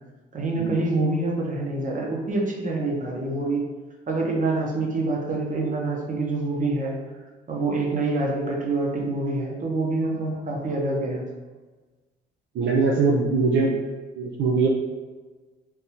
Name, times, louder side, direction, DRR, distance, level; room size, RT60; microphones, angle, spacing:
voice 1, 0.3-3.6 4.1-7.0 7.5-11.2, right 2 dB, 40° right, -1 dB, 0.8 m, -26 dB
voice 2, 12.6-13.8 14.2-14.7, right 4 dB, 65° right, -1 dB, 0.5 m, -21 dB
3.5 x 2.6 x 2.9 m, 1.3 s
cardioid pair, 90°, 20 cm